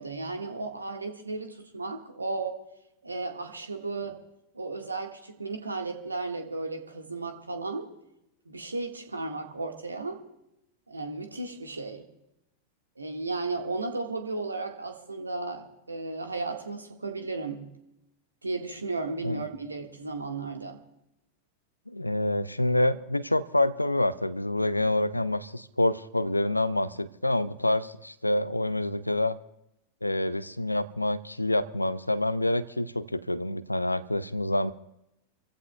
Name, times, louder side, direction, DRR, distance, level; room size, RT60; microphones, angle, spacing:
voice 1, 0.0-2.6 3.0-4.2 4.5-7.9 8.4-10.2 10.9-12.1 13.0-17.7 18.4-20.8, right 3 dB, 80° right, 5 dB, 1.6 m, -34 dB
voice 2, 21.9-29.4 30.0-34.7, left 1 dB, 85° left, 17 dB, 0.5 m, -27 dB
27.5 x 15.5 x 2.3 m, 0.85 s
figure-of-eight pair, 90°, 0 cm